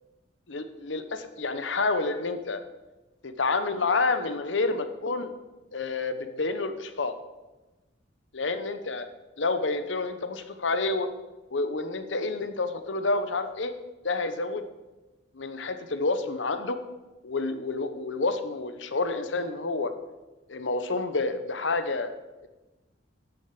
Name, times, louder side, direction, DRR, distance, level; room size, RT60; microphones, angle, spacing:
voice 1, 0.5-2.6 3.2-5.3 5.7-7.1 8.3-9.1 9.4-11.1 11.5-13.7 14.0-14.6 15.3-16.8 17.2-19.9 20.5-22.1, left 3 dB, 80° left, 10 dB, 1.0 m, -29 dB
10.5 x 6.6 x 6.8 m, 1.1 s
head